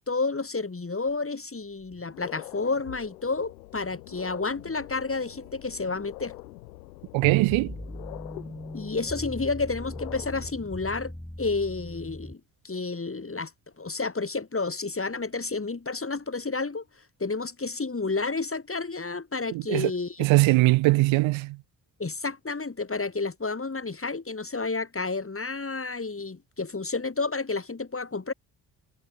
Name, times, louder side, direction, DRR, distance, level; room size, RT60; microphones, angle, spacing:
voice 1, 0.0-6.4 8.7-13.5 13.8-16.8 17.2-20.3 22.0-28.3, left 3 dB, 25° left, 7.6 m, -30 dB
sound 1, 1.1-1.2 1.7-10.5, left 18 dB, 85° left, 5.1 m, -45 dB
voice 2, 7.1-7.7 19.5-19.9 20.2-21.6, right 21 dB, 65° right, 1.3 m, -21 dB
sound 2, 7.2-12.3, left 1 dB, 5° left, 2.9 m, -39 dB
hypercardioid pair, 45°, 50 cm